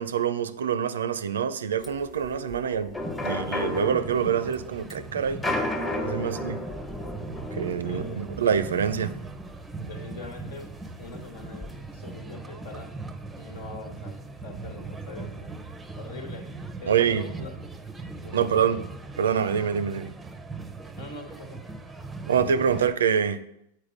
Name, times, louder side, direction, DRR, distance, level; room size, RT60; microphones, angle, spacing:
voice 1, 0.0-2.9 3.2-5.4 6.0-6.6 7.5-9.1 16.9-17.3 18.3-18.8 19.2-20.1 22.3-23.4, right 7 dB, 80° right, 13 dB, 0.4 m, -25 dB
sound 1, 1.8-10.4 10.7-10.8 11.0-11.7, left 2 dB, 20° left, 1.2 m, -34 dB
sound 2, 3.0-22.9, right 3 dB, 10° right, 0.6 m, -40 dB
voice 2, 7.8-8.3 9.8-10.7 11.0-12.9 13.3-15.5 15.9-17.6 18.2-18.8 21.0-21.6, left 3 dB, 70° left, 5 dB, 1.5 m, -42 dB
7.3 x 4.6 x 5.2 m, 0.78 s
hypercardioid pair, 100°, 0 cm